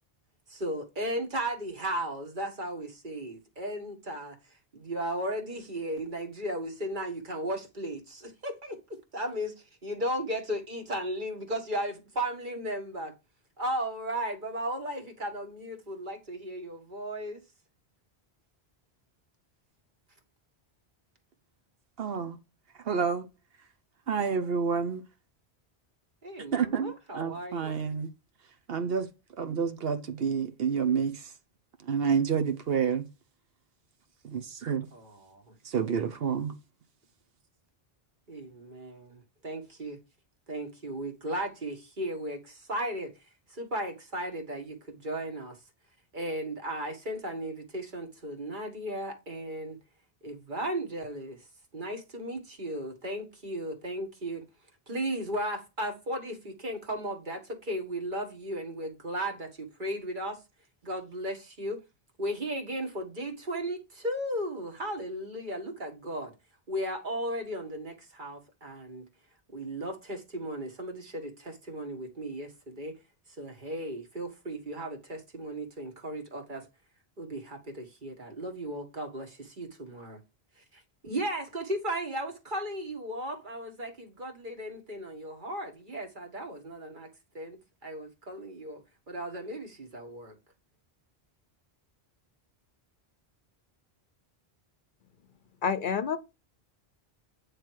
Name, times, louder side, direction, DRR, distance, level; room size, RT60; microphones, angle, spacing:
voice 1, 0.5-4.4 4.7-9.5 9.8-13.1 13.6-17.4 26.2-27.7 34.9-35.4 38.3-40.0 40.5-43.1 43.5-45.6 46.1-49.8 50.2-51.4 51.7-54.4 54.9-60.4 60.8-61.8 62.2-66.3 66.7-69.0 69.5-72.9 73.4-76.6 77.2-80.2 80.7-87.1 87.3-88.8 89.1-90.3, right 1 dB, 50° right, 1.7 m, -35 dB
voice 2, 22.0-22.4 22.8-23.3 24.1-25.0 26.5-28.1 28.7-29.1 29.4-31.3 31.8-33.0 34.2-34.9 35.6-36.5, right 6 dB, 70° right, 1.0 m, -29 dB
voice 3, 95.6-96.2, left 6 dB, 60° left, 0.7 m, -28 dB
9.1 x 3.3 x 4.6 m
omnidirectional pair, 1.1 m